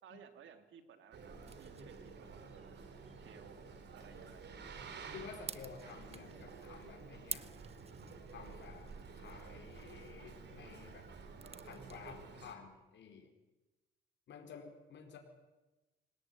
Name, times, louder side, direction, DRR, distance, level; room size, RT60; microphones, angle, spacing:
voice 1, 0.0-3.7 3.9-4.5, right 7 dB, 75° right, 8 dB, 3.1 m, -59 dB
Boat Water vehicle, 1.1-12.6, right 5 dB, 60° right, 4.0 m, -52 dB
sound 1, 1.3-12.2, right 5 dB, 30° right, 1.2 m, -52 dB
sound 2, 4.0-7.2, left 3 dB, 20° left, 5.2 m, -65 dB
voice 2, 5.1-7.5 8.3-11.1 11.6-13.3 14.3-15.2, left 6 dB, 65° left, 3 dB, 4.6 m, -52 dB
25.5 x 18.0 x 9.6 m, 1.1 s
cardioid pair, 90°, 20 cm